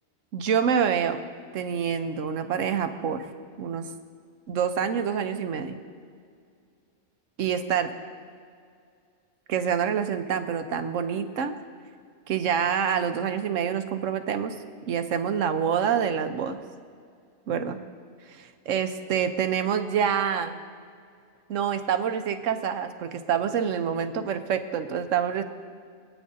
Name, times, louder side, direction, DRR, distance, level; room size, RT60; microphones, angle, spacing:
voice 1, 0.3-1.2 1.5-3.3 3.6-3.9 4.5-5.8 7.4-7.9 9.5-11.6 12.3-14.5 14.8-16.6 17.5-17.8 18.3-20.5 21.5-25.4, right 7 dB, 80° right, 8 dB, 1.1 m, -26 dB
24.0 x 9.2 x 2.7 m, 2.2 s
omnidirectional pair, 1.3 m